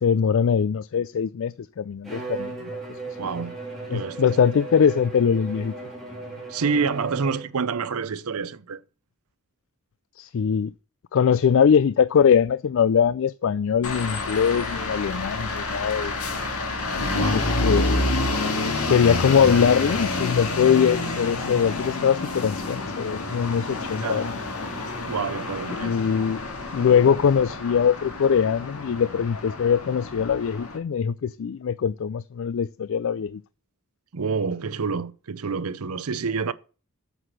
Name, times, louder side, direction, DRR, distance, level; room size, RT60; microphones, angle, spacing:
voice 1, 0.0-2.5 2.9-3.2 3.9-5.7 10.2-10.7 11.1-16.1 17.3-18.1 18.9-24.3 25.7-26.4 26.7-33.4, left 7 dB, 60° left, 0.3 m, -22 dB
Bowed string instrument, 2.0-7.7, right 3 dB, ahead, 3.1 m, -36 dB
voice 2, 3.2-3.6 3.9-4.4 6.5-8.8 17.1-17.9 24.0-24.3 25.1-26.0 34.1-36.5, right 5 dB, 75° right, 0.6 m, -28 dB
sound 1, 13.8-30.8, left 2 dB, 75° left, 1.9 m, -28 dB
8.0 x 5.9 x 6.0 m
head